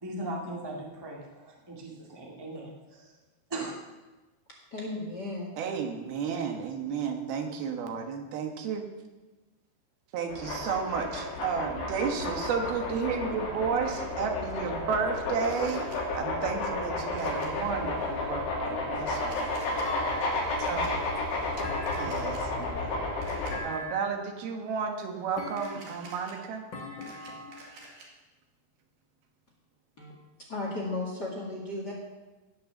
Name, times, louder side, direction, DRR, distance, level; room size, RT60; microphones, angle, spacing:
voice 1, 0.0-3.1 3.5-3.7 12.1-12.5, right 1 dB, 20° right, -2 dB, 0.5 m, -39 dB
voice 2, 4.7-5.5 30.0-30.1 30.5-31.9, left 2 dB, 35° left, -2 dB, 1.8 m, -34 dB
voice 3, 5.6-8.8 10.1-15.8 16.1-19.6 20.7-20.8 22.0-23.0 23.6-26.6, right 6 dB, 75° right, 4 dB, 3.1 m, -32 dB
sound 1, 10.3-23.6, left 2 dB, 85° left, 4.7 m, -32 dB
Camera, 15.4-16.0 17.2-17.5 19.0-19.8 20.6-20.9 21.9-22.4 23.2-23.5 25.5-26.3 26.8-28.1, right 2 dB, 55° right, 3.6 m, -49 dB
Thump thud, 19.8-20.8 21.6-22.5 23.5-24.3 25.4-26.1 26.7-27.7, left 1 dB, 55° left, 1.3 m, -40 dB
18.0 x 6.3 x 7.1 m, 1.2 s
omnidirectional pair, 4.6 m